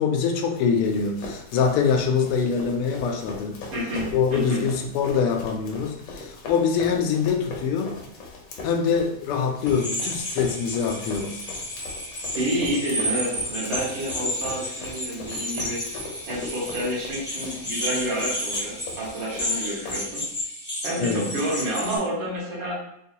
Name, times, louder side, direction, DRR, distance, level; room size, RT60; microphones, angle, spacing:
voice 1, 0.0-3.6 4.1-7.9 8.6-11.4 21.0-21.3, left 6 dB, 85° left, 3 dB, 1.5 m, -24 dB
Run, 0.5-20.4, left 3 dB, 65° left, 1.2 m, -40 dB
voice 2, 3.7-4.6 12.3-15.8 16.3-20.2 20.8-22.8, right 1 dB, 75° right, -6 dB, 2.2 m, -29 dB
sound 1, 9.6-22.0, left 1 dB, 15° left, 0.4 m, -32 dB
4.6 x 2.2 x 2.7 m, 0.77 s
omnidirectional pair, 2.4 m